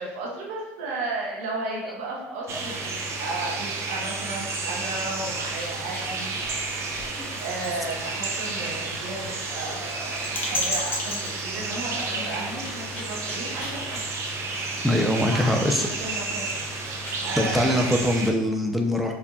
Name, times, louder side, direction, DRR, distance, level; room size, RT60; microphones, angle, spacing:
voice 1, 0.0-6.3 7.4-14.1 15.3-17.9, right 2 dB, 80° right, -4 dB, 1.0 m, -34 dB
voice 2, 1.6-1.9 2.5-2.6 12.0-12.1 14.8-15.9 17.4-19.1, left 1 dB, ahead, 1 dB, 0.5 m, -23 dB
sound 1, 2.5-18.3, right 3 dB, 45° right, 0.6 m, -31 dB
sound 2, 4.8-17.3, left 1 dB, 30° left, 1.2 m, -37 dB
4.3 x 2.6 x 2.4 m, 0.92 s
supercardioid pair, 95°, 7 cm